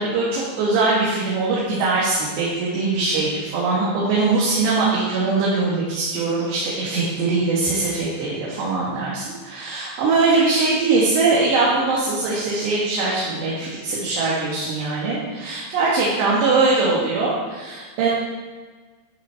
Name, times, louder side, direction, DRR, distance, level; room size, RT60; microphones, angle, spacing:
voice 1, 0.0-18.1, right 3 dB, 65° right, -6 dB, 3.4 m, -21 dB
12.0 x 7.4 x 4.4 m, 1.4 s
omnidirectional pair, 5.9 m